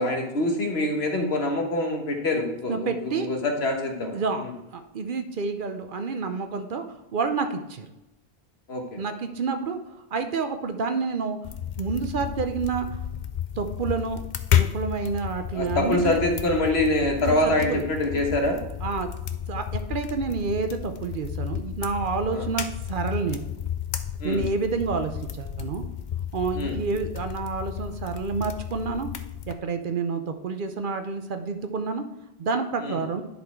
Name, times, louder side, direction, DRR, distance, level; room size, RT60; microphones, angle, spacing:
voice 1, 0.0-4.5 8.7-9.0 15.5-18.6 22.3-22.5 24.2-24.4 26.5-26.8 32.8-33.0, left 1 dB, 85° left, 3 dB, 1.5 m, -25 dB
voice 2, 2.7-3.3 4.1-4.5 4.7-7.9 9.0-9.8 10.1-11.4 11.8-12.9 13.6-14.2 14.5-16.2 17.3-17.8 18.8-19.1 19.5-23.4 24.2-25.8 26.3-29.1 29.5-32.1 32.4-33.2, right 4 dB, 60° right, 8 dB, 0.8 m, -29 dB
sound 1, 11.4-29.5, left 9 dB, 55° left, 0.6 m, -32 dB
10.5 x 4.2 x 4.5 m, 0.96 s
omnidirectional pair, 1.0 m